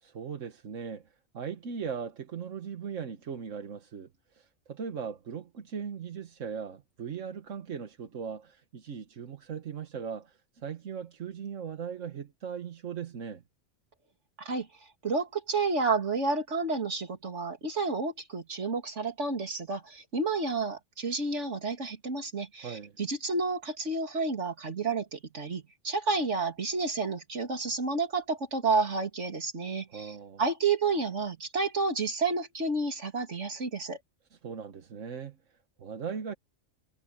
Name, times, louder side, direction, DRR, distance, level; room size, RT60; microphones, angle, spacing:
voice 1, 0.0-1.0 1.3-13.4 22.6-23.0 29.9-30.4 34.3-36.4, right 6 dB, 85° right, 1.6 m, -39 dB
voice 2, 15.0-34.0, right 3 dB, 70° right, 3.0 m, -30 dB
omnidirectional pair, 1.3 m